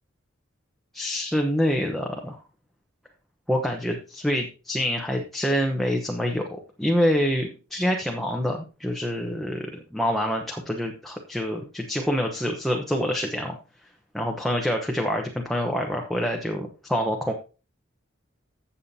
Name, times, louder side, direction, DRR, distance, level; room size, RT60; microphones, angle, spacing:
voice 1, 0.9-2.4 3.5-13.6 14.1-17.3, equal, ahead, 1 dB, 0.9 m, -26 dB
15.0 x 7.0 x 2.8 m, 0.34 s
head